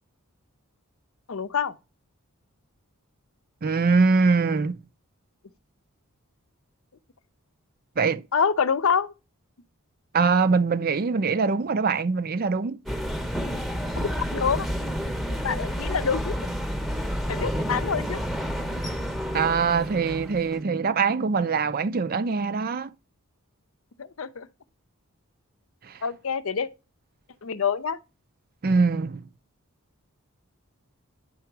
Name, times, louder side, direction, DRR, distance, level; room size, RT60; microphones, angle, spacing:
voice 1, 1.3-1.7 8.3-9.1 14.2-14.7 15.4-16.3 17.3-18.2 24.0-24.5 26.0-26.7 27.4-28.0, left 6 dB, 65° left, 0.6 m, -26 dB
voice 2, 3.6-4.8 8.0-8.2 10.1-12.8 19.3-22.9 25.8-26.0 28.6-29.2, right 4 dB, 45° right, 0.5 m, -23 dB
sound 1, 12.9-20.6, equal, ahead, 0.8 m, -30 dB
10.0 x 3.9 x 4.6 m
head